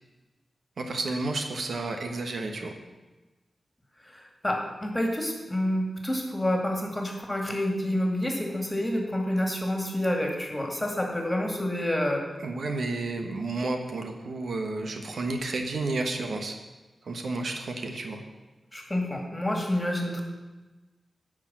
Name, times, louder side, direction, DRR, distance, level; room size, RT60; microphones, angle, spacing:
voice 1, 0.8-2.7 12.4-16.6 17.0-18.2, right 3 dB, 75° right, 4 dB, 1.2 m, -31 dB
voice 2, 4.0-12.2 18.7-20.2, left 1 dB, 15° left, 2 dB, 2.1 m, -28 dB
10.0 x 4.9 x 7.5 m, 1.2 s
cardioid pair, 70°, 0 cm